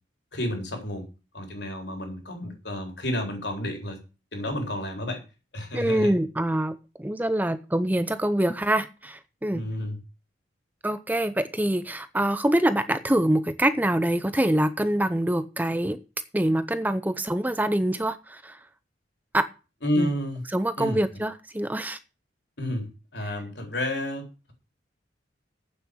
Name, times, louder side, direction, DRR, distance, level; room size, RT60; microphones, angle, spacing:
voice 1, 0.3-1.1 1.3-4.0 4.3-5.2 5.5-6.1 9.5-10.0 19.8-20.4 20.8-21.0 22.6-24.5, left 1 dB, 70° left, 3 dB, 4.0 m, -30 dB
voice 2, 5.7-9.6 10.8-16.0 16.3-18.6 19.3-19.5 20.0-20.1 20.5-22.0, right 1 dB, 10° right, 12 dB, 0.6 m, -25 dB
8.8 x 7.4 x 8.4 m, 0.32 s
head